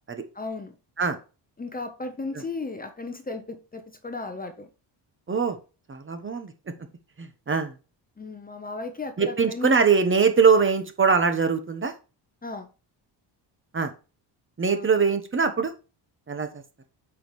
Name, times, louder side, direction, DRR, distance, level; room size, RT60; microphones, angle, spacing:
voice 1, 0.3-0.7 1.6-4.7 8.2-9.7 12.4-12.7 14.6-14.9, left 3 dB, 20° left, 0.8 m, -35 dB
voice 2, 5.9-6.5 7.2-7.7 9.2-11.9 13.7-13.9 14.6-15.7 16.3-16.5, right 5 dB, 25° right, 1.0 m, -22 dB
8.4 x 5.5 x 3.1 m
cardioid pair, 130°, 46 cm